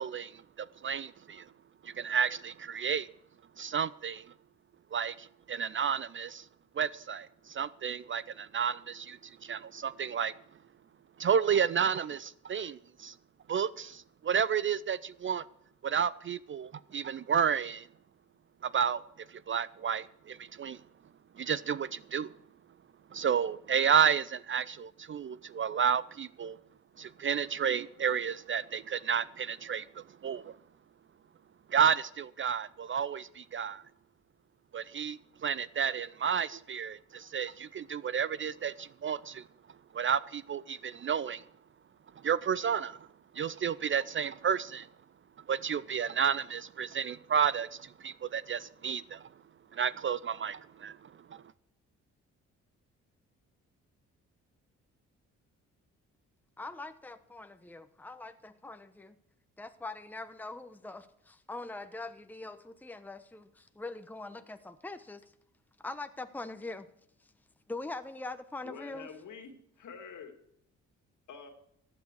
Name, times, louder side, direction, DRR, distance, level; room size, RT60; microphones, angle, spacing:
voice 1, 0.0-1.5 1.8-3.1 3.6-4.2 4.9-6.5 6.8-10.3 11.2-13.2 13.5-15.4 15.8-17.9 18.6-19.0 19.3-20.8 21.4-22.3 23.1-26.6 27.0-30.5 31.7-33.8 34.7-39.4 39.9-41.4 42.2-43.0 43.3-44.9 45.5-49.3 49.7-51.4, right 7 dB, 35° right, 0.5 m, -31 dB
voice 2, 56.6-59.2 59.6-65.3 65.8-66.9 67.7-69.1, left 2 dB, 5° left, 0.9 m, -42 dB
voice 3, 68.6-70.3 71.3-71.5, left 5 dB, 60° left, 2.2 m, -47 dB
15.0 x 9.4 x 4.7 m
hypercardioid pair, 50°, 34 cm